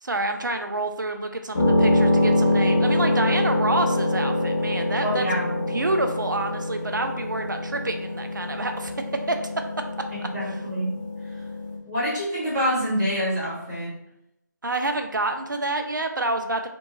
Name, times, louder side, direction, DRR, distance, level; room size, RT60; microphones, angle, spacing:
voice 1, 0.0-5.2 5.7-9.6 10.4-10.6 14.6-16.7, right 2 dB, 75° right, 5 dB, 0.4 m, -28 dB
sound 1, 1.6-11.8, left 1 dB, 25° left, 0.5 m, -24 dB
voice 2, 5.0-5.6 10.2-10.9 11.8-13.9, equal, 10° right, -16 dB, 1.0 m, -26 dB
2.6 x 2.3 x 2.9 m, 0.81 s
figure-of-eight pair, 160°, 10 cm